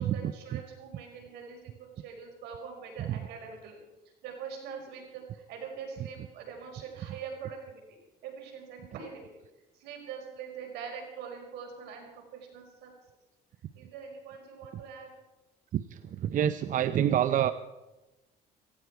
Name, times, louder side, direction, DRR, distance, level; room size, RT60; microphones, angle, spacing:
voice 1, 0.0-3.8 4.2-7.8 8.2-9.3 9.7-12.9 13.8-15.1, right 6 dB, 85° right, 1 dB, 5.2 m, -43 dB
voice 2, 15.7-17.5, right 10 dB, 50° right, 12 dB, 0.6 m, -27 dB
18.0 x 16.0 x 4.7 m, 1.1 s
cardioid pair, 110°, 17 cm